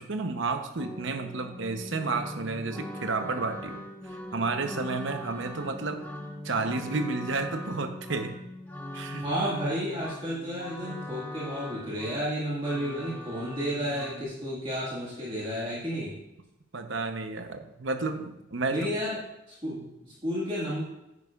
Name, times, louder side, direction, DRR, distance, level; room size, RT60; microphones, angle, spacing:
voice 1, 0.0-3.8 4.1-6.1 6.4-8.4 8.9-9.2 16.7-18.9 19.8-19.9, right 3 dB, 60° right, 7 dB, 0.8 m, -31 dB
sound 1, 0.8-14.2, left 1 dB, 10° left, 0.8 m, -41 dB
voice 2, 9.2-16.1 18.7-19.2 19.5-20.8, equal, 25° right, -7 dB, 1.9 m, -32 dB
9.8 x 9.5 x 2.4 m, 0.89 s
head